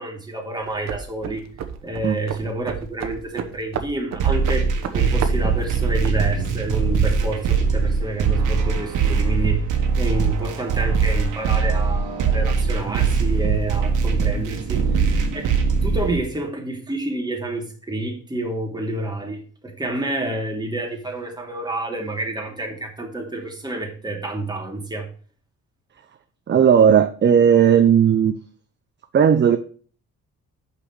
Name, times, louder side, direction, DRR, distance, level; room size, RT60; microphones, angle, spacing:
voice 1, 0.0-1.5 1.8-4.7 4.9-9.6 10.0-14.8 15.3-15.5 15.8-25.1, right 2 dB, 15° right, 0 dB, 2.7 m, -28 dB
sound 1, 0.6-6.2, right 7 dB, 60° right, 1.1 m, -33 dB
sound 2, 4.2-16.2, right 5 dB, 90° right, 1.5 m, -21 dB
voice 2, 26.5-28.3 29.1-29.6, right 8 dB, 35° right, 9 dB, 0.7 m, -15 dB
6.0 x 6.0 x 6.1 m, 0.41 s
cardioid pair, 90°, 30 cm